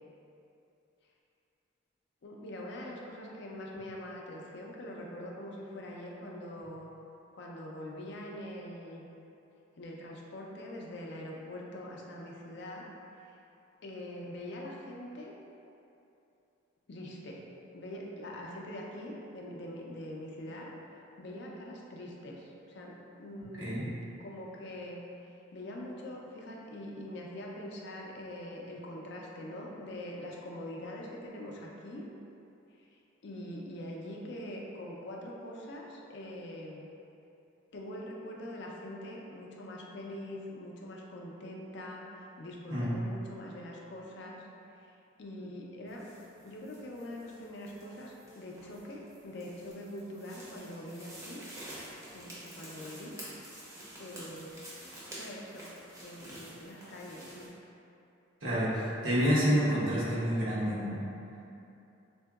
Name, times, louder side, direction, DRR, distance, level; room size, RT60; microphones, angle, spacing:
voice 1, 2.2-6.9 7.4-9.1 9.8-12.8 13.2-13.3 13.8-15.3 16.9-17.4 17.7-20.7 21.2-25.0 25.5-32.1 32.8-32.9 33.2-36.8 37.7-44.4 44.7-44.9 45.2-46.1 46.4-51.4 52.1-53.1 54.0-54.6 55.1-55.7 56.0-57.5, left 1 dB, 60° left, -2 dB, 0.4 m, -43 dB
sound 1, 45.9-57.5, right 1 dB, 15° right, 0.6 m, -49 dB
voice 2, 58.4-61.0, equal, 90° right, -10 dB, 1.0 m, -28 dB
3.6 x 2.6 x 2.3 m, 2.8 s
head